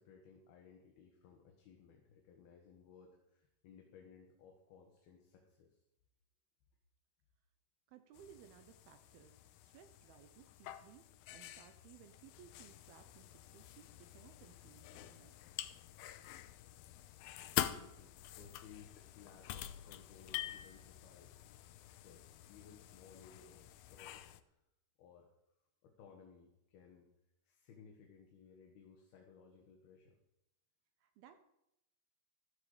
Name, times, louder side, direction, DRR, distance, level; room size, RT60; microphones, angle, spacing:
voice 1, 0.0-5.8 17.4-21.4 21.8-24.6 25.0-25.3 25.8-27.1 27.4-30.2, left 6 dB, 65° left, 1 dB, 3.2 m, -60 dB
voice 2, 7.9-15.4 31.0-31.4, right 9 dB, 75° right, 8 dB, 2.4 m, -61 dB
sound 1, 8.1-24.4, left 13 dB, 85° left, 2.1 m, -47 dB
14.0 x 13.5 x 5.0 m, 0.83 s
omnidirectional pair, 5.2 m